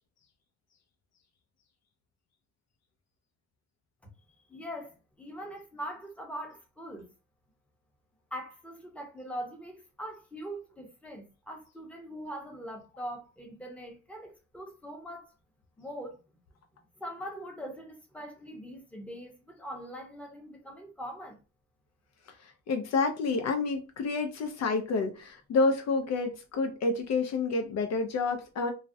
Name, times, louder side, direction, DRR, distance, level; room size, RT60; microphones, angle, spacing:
voice 1, 4.5-7.1 8.3-15.3 15.8-16.2 17.0-21.4, equal, 5° left, 0.7 m, -42 dB
voice 2, 22.7-28.7, left 3 dB, 60° left, 0.5 m, -29 dB
2.3 x 2.0 x 2.6 m
cardioid pair, 90°, 30 cm